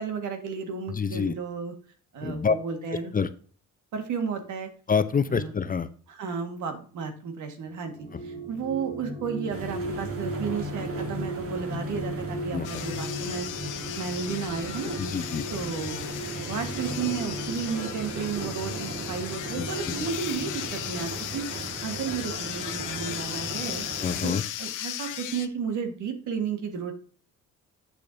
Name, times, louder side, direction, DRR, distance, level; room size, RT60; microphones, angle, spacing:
voice 1, 0.0-1.7 2.1-3.1 3.9-4.7 5.3-5.5 6.1-13.5 14.0-15.0 15.5-16.1 16.4-23.9 24.2-26.9, right 6 dB, 75° right, 6 dB, 1.7 m, -33 dB
voice 2, 0.9-1.3 2.2-2.6 3.1-3.3 4.9-5.9 12.5-12.7 15.0-15.4 19.6-20.1 24.0-24.4, left 6 dB, 30° left, 12 dB, 0.6 m, -27 dB
sound 1, 7.8-20.6, equal, 15° right, 2.5 m, -37 dB
sound 2, 9.5-24.3, right 3 dB, 50° right, 1.9 m, -38 dB
sound 3, 12.6-25.5, left 12 dB, 85° left, 0.8 m, -36 dB
8.3 x 6.5 x 2.7 m, 0.41 s
cardioid pair, 90°, 30 cm